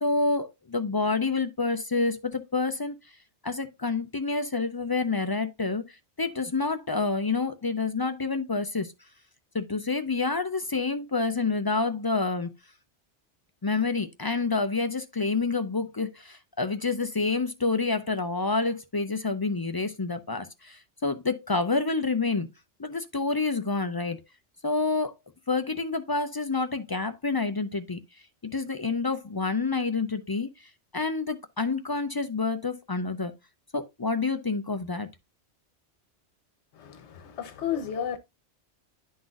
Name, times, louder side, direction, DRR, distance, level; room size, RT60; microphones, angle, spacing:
voice 1, 0.0-2.9 3.4-8.9 9.5-12.5 13.6-22.5 22.8-24.2 24.6-25.1 25.5-28.0 28.5-30.5 30.9-33.3 33.7-35.1, left 3 dB, 35° left, 0.3 m, -28 dB
voice 2, 36.7-38.2, left 9 dB, 75° left, 1.2 m, -32 dB
11.5 x 4.0 x 2.4 m
omnidirectional pair, 1.2 m